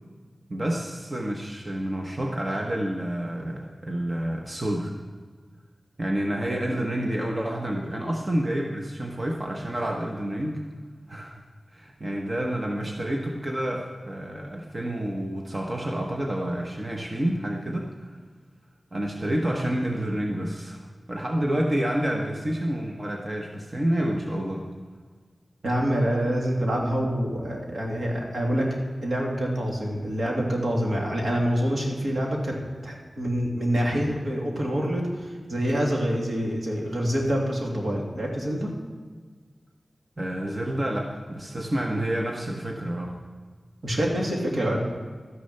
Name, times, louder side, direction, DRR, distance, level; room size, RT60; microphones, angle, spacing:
voice 1, 0.5-4.9 6.0-10.6 11.1-11.4 11.7-18.1 18.9-24.7 40.2-43.2, right 1 dB, 35° right, 0 dB, 1.2 m, -29 dB
voice 2, 25.6-28.7 29.0-32.6 32.8-38.7 43.8-44.8, equal, 70° right, -2 dB, 2.7 m, -26 dB
12.5 x 10.0 x 5.7 m, 1.5 s
wide cardioid pair, 85°, 0 cm